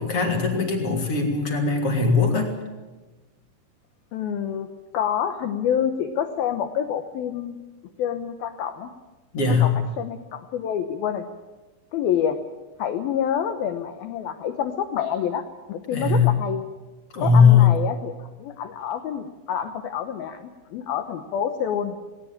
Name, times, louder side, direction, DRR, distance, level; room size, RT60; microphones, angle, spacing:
voice 1, 0.0-2.5 9.3-9.7 15.9-16.3 17.1-17.7, left 5 dB, 35° left, 2 dB, 3.3 m, -19 dB
voice 2, 4.1-7.6 8.0-8.9 9.6-11.3 11.9-12.4 12.8-16.6 17.2-22.0, left 9 dB, 85° left, 8 dB, 2.1 m, -27 dB
19.5 x 19.0 x 8.9 m, 1.2 s
omnidirectional pair, 5.9 m